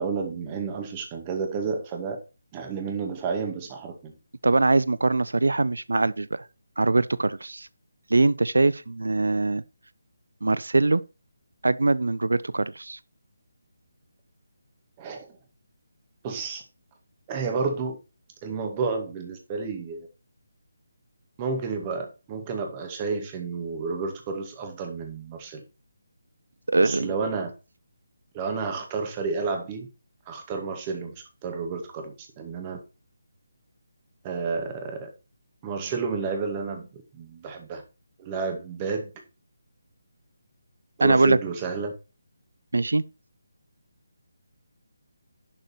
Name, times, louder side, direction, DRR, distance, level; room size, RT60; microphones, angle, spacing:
voice 1, 0.0-2.2 2.5-4.2 15.0-15.3 16.2-16.6 17.3-18.0 18.4-20.1 21.4-25.6 26.8-27.5 28.3-29.9 30.3-32.8 34.2-35.1 35.6-37.8 38.2-39.1 41.0-41.9, right 4 dB, 25° right, 2.2 m, -31 dB
voice 2, 4.4-6.5 6.8-7.7 8.1-9.6 10.4-11.0 11.6-13.0 26.7-27.1 41.0-41.4 42.7-43.0, right 2 dB, 80° right, 0.6 m, -22 dB
11.5 x 5.3 x 4.3 m
figure-of-eight pair, 155°, 0 cm